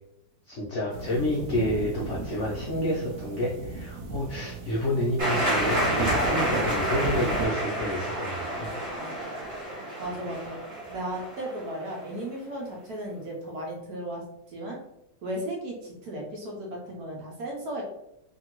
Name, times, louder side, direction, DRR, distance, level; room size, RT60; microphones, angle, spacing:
voice 1, 0.5-8.7, left 1 dB, 75° left, -3 dB, 0.6 m, -29 dB
sound 1, 0.9-7.5, right 3 dB, 80° right, 0.7 m, -35 dB
sound 2, 5.2-11.8, right 1 dB, 40° right, 0.5 m, -29 dB
voice 2, 10.0-10.6 10.9-14.2 14.5-14.8 15.2-17.8, right 1 dB, 65° right, -1 dB, 1.0 m, -35 dB
2.8 x 2.6 x 2.9 m, 0.85 s
omnidirectional pair, 1.9 m